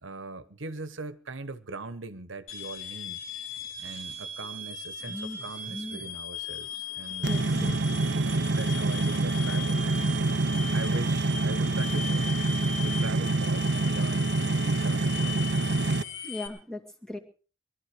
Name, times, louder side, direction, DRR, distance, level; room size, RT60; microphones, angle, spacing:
voice 1, 0.0-3.2 3.8-7.4 8.1-10.2 10.7-12.4 12.8-14.4 14.6-15.7, right 3 dB, 80° right, 1.2 m, -41 dB
sound 1, 2.5-16.5, left 4 dB, 90° left, 5.0 m, -38 dB
voice 2, 5.0-6.1 6.7-8.3 16.2-17.2, left 1 dB, 5° left, 2.2 m, -40 dB
sound 2, 7.2-16.0, right 2 dB, 60° right, 0.7 m, -26 dB
22.0 x 13.0 x 4.9 m
head